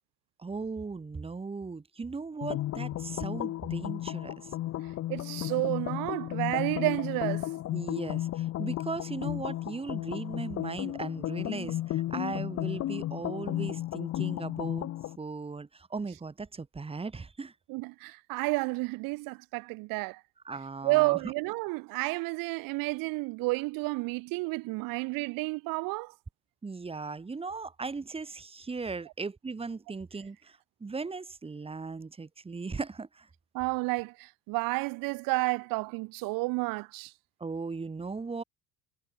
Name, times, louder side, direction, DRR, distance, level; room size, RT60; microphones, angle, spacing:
voice 1, 0.4-4.5 7.7-14.9 15.2-17.5 20.4-21.3 26.6-33.3 37.4-38.4, right 4 dB, 15° right, 3.1 m, -38 dB
sound 1, 2.4-15.2, left 14 dB, 50° left, 1.0 m, -34 dB
voice 2, 5.1-7.5 17.7-20.2 20.8-26.1 33.5-37.1, right 25 dB, 85° right, 1.9 m, -31 dB
cardioid pair, 135°, 33 cm